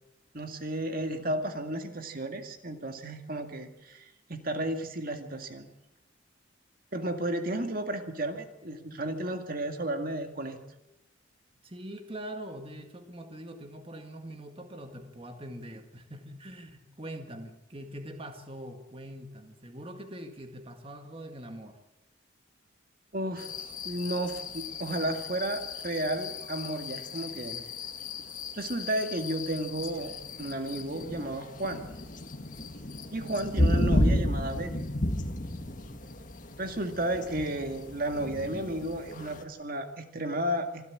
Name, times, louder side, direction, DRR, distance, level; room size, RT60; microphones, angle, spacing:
voice 1, 0.3-5.7 6.9-10.6 23.1-23.5 23.8-27.6 28.5-31.8 33.1-34.9 36.6-40.9, right 1 dB, 45° right, 6 dB, 2.1 m, -33 dB
voice 2, 11.6-21.8, right 1 dB, 30° right, 6 dB, 1.8 m, -43 dB
sound 1, 23.4-39.4, left 1 dB, 40° left, 1.8 m, -33 dB
26.0 x 13.0 x 8.6 m, 0.92 s
head